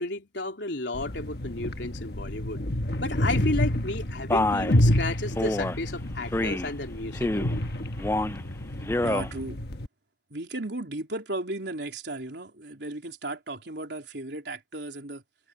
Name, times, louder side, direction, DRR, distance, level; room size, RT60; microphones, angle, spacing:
voice 1, 0.0-2.6 3.0-7.3, left 2 dB, 80° left, 3.4 m, -32 dB
sound 1, 0.9-9.9, left 1 dB, 60° left, 1.4 m, -29 dB
Male speech man speaking, 4.3-4.8 5.4-5.8 6.3-6.7 7.1-7.6 8.0-8.4 8.8-9.3, left 1 dB, 15° left, 0.5 m, -27 dB
voice 2, 9.0-9.6 10.3-15.2, right 2 dB, 75° right, 3.5 m, -35 dB
head